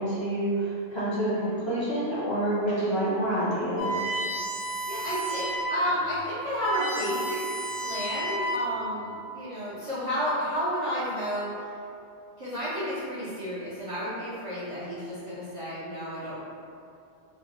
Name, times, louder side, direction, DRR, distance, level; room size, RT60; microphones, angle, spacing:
voice 1, 0.0-4.0, right 1 dB, 35° left, -11 dB, 0.5 m, -27 dB
sound 1, 3.8-5.8 6.2-6.3 6.5-8.9, right 1 dB, 60° left, 0.8 m, -31 dB
voice 2, 4.9-7.4 7.8-11.5 12.4-16.4, equal, 45° right, -10 dB, 0.5 m, -31 dB
3.1 x 2.0 x 2.9 m, 2.6 s
omnidirectional pair, 1.1 m